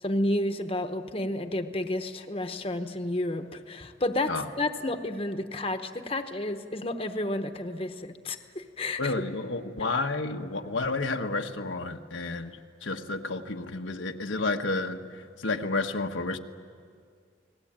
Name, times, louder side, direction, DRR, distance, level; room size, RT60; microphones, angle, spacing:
voice 1, 0.0-9.1, left 1 dB, 30° left, 7 dB, 1.0 m, -31 dB
voice 2, 9.0-15.0 15.4-16.4, left 3 dB, 85° left, 4 dB, 1.3 m, -31 dB
29.5 x 20.0 x 8.9 m, 2.2 s
head